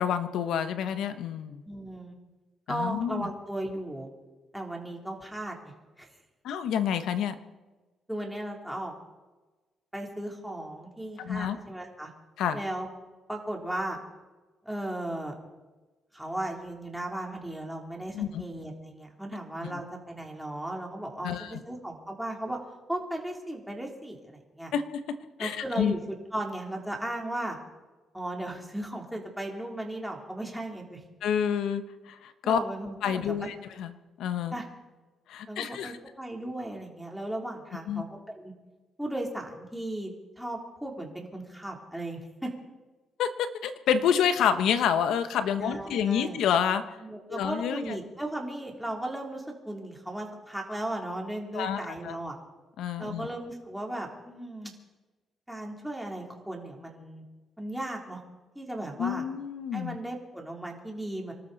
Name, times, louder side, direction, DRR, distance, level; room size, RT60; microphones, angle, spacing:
voice 1, 0.0-1.6 2.7-3.3 6.4-7.4 11.2-11.6 12.4-12.6 18.1-18.4 19.6-19.8 21.2-21.6 24.7-25.9 31.2-32.6 33.0-33.9 34.2-34.5 35.3-36.0 37.9-38.0 43.2-46.8 47.3-47.9 51.5-52.2 52.8-53.3 59.0-60.0, left 8 dB, 80° left, 10 dB, 1.2 m, -28 dB
voice 2, 1.7-2.2 2.7-4.1 4.5-6.1 8.1-8.9 9.9-12.1 12.5-12.9 13.3-14.0 14.7-15.3 16.1-22.6 22.9-24.7 25.4-27.6 28.1-31.0 32.4-33.5 34.5-34.7 35.5-38.5 39.0-42.5 45.6-46.4 47.0-52.4 53.0-54.7 55.5-57.2 57.6-58.2 58.6-59.2 59.7-61.3, right 1 dB, 5° right, 0 dB, 3.5 m, -36 dB
25.5 x 13.0 x 4.2 m, 1.2 s
cardioid pair, 90°, 0 cm